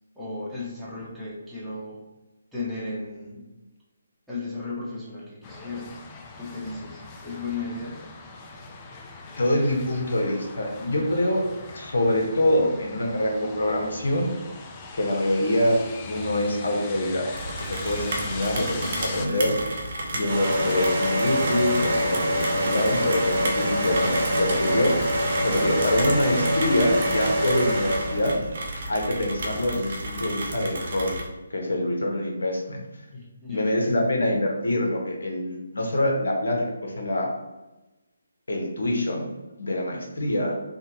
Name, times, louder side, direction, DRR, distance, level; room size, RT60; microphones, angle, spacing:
voice 1, 0.1-2.0 2.5-3.6 4.3-5.9 6.4-8.0 9.9-10.0 33.1-33.8, left 3 dB, ahead, -11 dB, 0.9 m, -35 dB
sound 1, 5.4-19.3, left 3 dB, 25° left, 0.4 m, -40 dB
voice 2, 9.4-11.4 11.7-14.3 14.9-15.8 16.1-17.3 17.7-19.6 20.1-24.9 25.4-28.4 28.9-31.2 31.5-32.8 33.5-37.3 38.5-39.3 39.6-40.5, left 1 dB, 70° left, 1 dB, 0.9 m, -25 dB
Rain, 17.3-31.3, right 1 dB, 50° right, 0.6 m, -32 dB
sound 2, 20.2-28.3, equal, 30° right, 1.0 m, -25 dB
3.7 x 2.2 x 2.8 m, 1.1 s
figure-of-eight pair, 145°, 0 cm